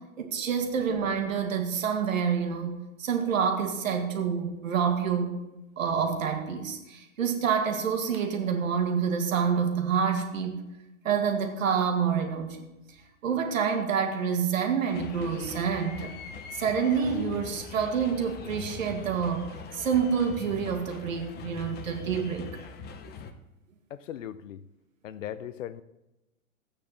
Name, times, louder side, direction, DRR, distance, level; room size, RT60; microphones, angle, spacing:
voice 1, 0.0-5.3 5.8-10.6 11.0-13.0 13.2-16.1 16.5-22.5, right 6 dB, 70° right, 4 dB, 2.1 m, -28 dB
sound 1, 14.8-23.3, left 6 dB, 25° left, 0.9 m, -42 dB
voice 2, 23.9-24.6 25.0-25.8, left 10 dB, 65° left, 15 dB, 0.8 m, -38 dB
13.5 x 8.9 x 4.1 m, 0.97 s
hypercardioid pair, 115°, 41 cm